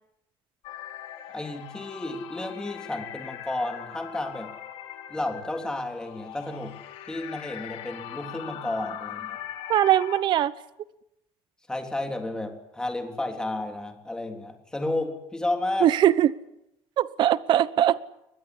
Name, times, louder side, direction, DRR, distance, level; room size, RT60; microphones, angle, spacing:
sound 1, 0.6-10.2, left 11 dB, 85° left, 3.7 m, -41 dB
voice 1, 1.3-4.5 5.1-6.8 7.1-9.4 11.7-15.9, left 2 dB, 5° left, 4 dB, 3.5 m, -32 dB
voice 2, 9.7-10.5 15.8-16.3 17.0-18.0, right 11 dB, 50° right, 17 dB, 1.0 m, -21 dB
23.5 x 20.5 x 9.9 m, 0.86 s
cardioid pair, 160°, 10 cm